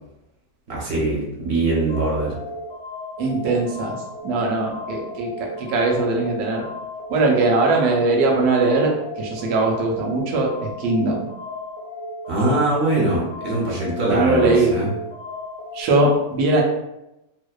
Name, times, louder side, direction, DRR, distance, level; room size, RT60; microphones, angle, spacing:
voice 1, 0.7-2.4 12.3-14.9, right 2 dB, 55° right, -5 dB, 0.7 m, -22 dB
sound 1, 1.9-15.8, left 2 dB, 70° left, 0.9 m, -35 dB
voice 2, 3.2-3.9 4.2-5.3 5.6-6.6 7.1-11.3 14.1-14.7 15.7-16.6, right 3 dB, 85° right, 0 dB, 1.1 m, -20 dB
2.7 x 2.1 x 2.2 m, 0.92 s
omnidirectional pair, 1.6 m